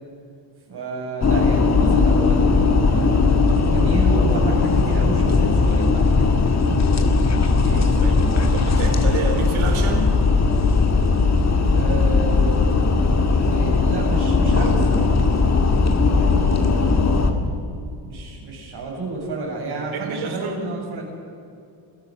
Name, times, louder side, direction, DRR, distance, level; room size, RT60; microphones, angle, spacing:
voice 1, 0.7-6.3 11.7-12.8 13.4-15.3 16.1-17.0 18.0-21.0, right 2 dB, 50° right, -1 dB, 7.4 m, -30 dB
sound 1, 1.2-17.3, left 4 dB, 30° left, 2.1 m, -18 dB
voice 2, 7.6-10.2 19.7-20.7, right 5 dB, 70° right, 5 dB, 3.9 m, -29 dB
27.5 x 16.5 x 6.5 m, 2.5 s
cardioid pair, 145°, 50 cm